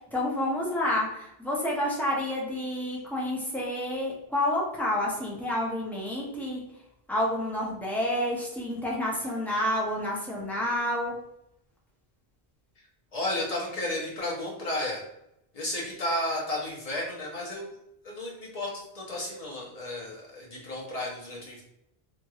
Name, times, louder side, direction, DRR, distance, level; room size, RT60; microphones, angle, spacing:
voice 1, 0.1-6.6 7.1-11.2, left 1 dB, ahead, -5 dB, 0.4 m, -29 dB
voice 2, 13.1-15.0 15.5-17.7 18.0-21.6, left 1 dB, 40° left, -3 dB, 0.8 m, -33 dB
2.9 x 2.8 x 2.3 m, 0.81 s
omnidirectional pair, 1.1 m